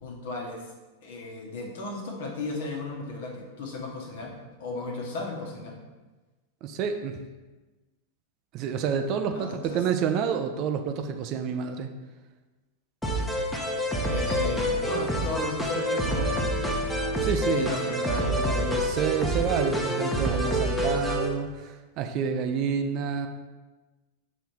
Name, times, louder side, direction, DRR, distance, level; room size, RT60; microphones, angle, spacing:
voice 1, 0.0-0.6 1.0-5.7 9.3-9.8 14.1-16.9 17.4-18.6, left 3 dB, 55° left, 0 dB, 1.2 m, -35 dB
voice 2, 6.6-7.1 8.5-11.9 17.2-23.3, right 7 dB, 40° right, 6 dB, 0.5 m, -29 dB
sound 1, 13.0-21.3, equal, 5° left, 1.0 m, -27 dB
6.3 x 3.3 x 4.4 m, 1.2 s
figure-of-eight pair, 90°, 0 cm